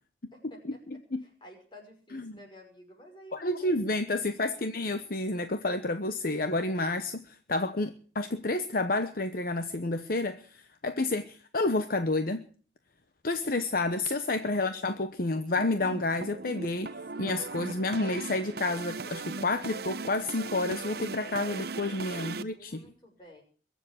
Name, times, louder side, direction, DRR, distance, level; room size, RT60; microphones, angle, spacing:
voice 1, 0.3-3.9 4.1-4.6 14.5-14.8 17.1-17.4 22.2-23.4, left 1 dB, 25° left, 2 dB, 5.6 m, -53 dB
voice 2, 0.9-1.2 2.1-2.4 3.3-12.4 13.2-22.8, left 2 dB, 55° left, 9 dB, 1.0 m, -30 dB
sound 1, 15.6-22.4, right 4 dB, 60° right, 0.8 m, -39 dB
22.5 x 7.5 x 8.3 m, 0.43 s
head